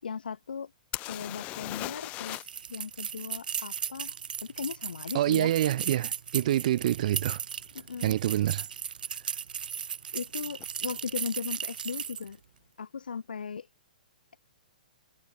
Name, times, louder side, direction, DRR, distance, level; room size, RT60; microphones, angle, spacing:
voice 1, 0.0-0.7 1.0-4.2 4.4-5.5 6.4-6.8 7.7-8.2 10.1-12.4 12.8-13.7, left 6 dB, 90° left, 4.0 m, -38 dB
sound 1, 0.9-2.6 2.9-3.0 6.4-6.5 7.2-7.3 7.6-8.2 10.2-10.3 10.6-10.7, left 20 dB, 30° left, 1.9 m, -38 dB
sound 2, 2.3-12.3, right 8 dB, 75° right, 3.2 m, -36 dB
voice 2, 5.1-7.4 8.0-8.7, right 13 dB, 55° right, 0.7 m, -26 dB
hypercardioid pair, 145°, 5 cm